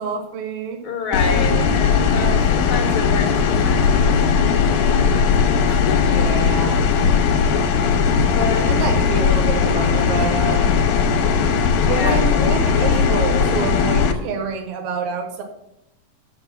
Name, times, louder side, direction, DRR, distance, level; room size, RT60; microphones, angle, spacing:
voice 1, 0.0-0.8 6.1-6.8 8.7-10.7 11.9-15.4, right 5 dB, 65° right, 2 dB, 2.4 m, -27 dB
voice 2, 0.8-4.4 5.6-6.1 8.2-8.7 11.8-12.2, left 4 dB, 55° left, 3 dB, 1.5 m, -28 dB
sound 1, 1.1-14.1, left 6 dB, 80° left, 2.2 m, -18 dB
6.7 x 6.0 x 7.1 m, 0.84 s
omnidirectional pair, 3.7 m